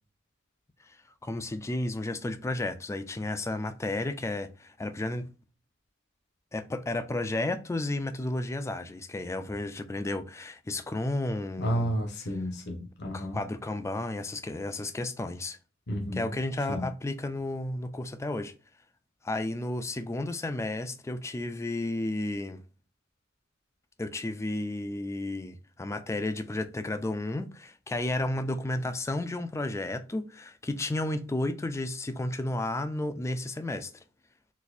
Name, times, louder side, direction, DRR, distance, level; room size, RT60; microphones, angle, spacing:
voice 1, 1.2-5.3 6.5-11.9 13.1-15.6 16.1-18.5 19.2-22.6 24.0-33.9, left 2 dB, 15° left, 0.3 m, -32 dB
voice 2, 11.6-13.4 15.9-16.4 16.7-16.9, equal, 55° left, 0.8 m, -31 dB
4.1 x 2.5 x 2.5 m
head